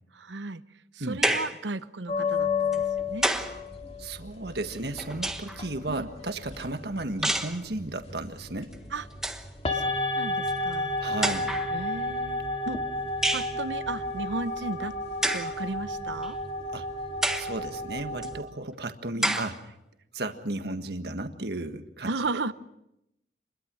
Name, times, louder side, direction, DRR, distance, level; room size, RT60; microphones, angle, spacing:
voice 1, 0.1-0.6 0.9-3.3 5.9-6.1 8.9-9.1 9.7-11.0 11.7-12.4 12.7-12.8 13.3-14.9 15.3-16.4 19.2-19.4 21.0-21.2 22.1-22.5, right 3 dB, 90° right, 14 dB, 0.9 m, -35 dB
sound 1, 1.2-1.6 2.7-3.6 4.7-5.6 7.2-7.6 8.7-8.8 9.1-9.5 10.5-10.6 11.2-11.7 13.2-13.6 15.2-15.6 16.2-16.3 17.2-17.6 18.2-18.3 19.2-19.6, right 1 dB, 5° right, 1.2 m, -28 dB
sound 2, 2.1-18.4, left 3 dB, 35° left, 2.2 m, -32 dB
voice 2, 4.0-8.7 11.0-11.5 16.7-16.9 17.4-19.6 20.1-22.5, right 2 dB, 65° right, 7 dB, 1.6 m, -34 dB
27.5 x 21.5 x 6.2 m, 0.84 s
head